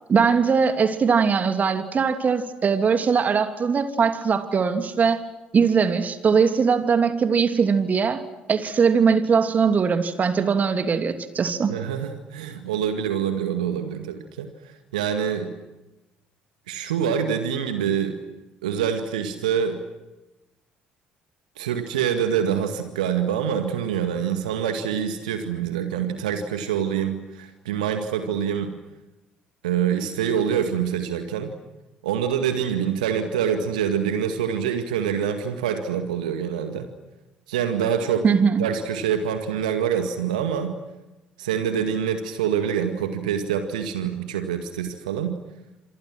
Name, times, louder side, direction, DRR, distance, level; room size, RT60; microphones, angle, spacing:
voice 1, 0.1-5.2 5.5-8.2 8.5-11.7 38.2-38.7, right 6 dB, 40° right, 2.8 m, -20 dB
voice 2, 11.7-14.5 14.9-15.6 16.7-18.2 18.6-19.8 21.6-28.7 29.6-31.5 32.0-36.9 37.5-38.3 38.6-40.8 41.4-45.4, right 8 dB, 75° right, 2.0 m, -25 dB
30.0 x 27.5 x 6.1 m
figure-of-eight pair, 50°, 4 cm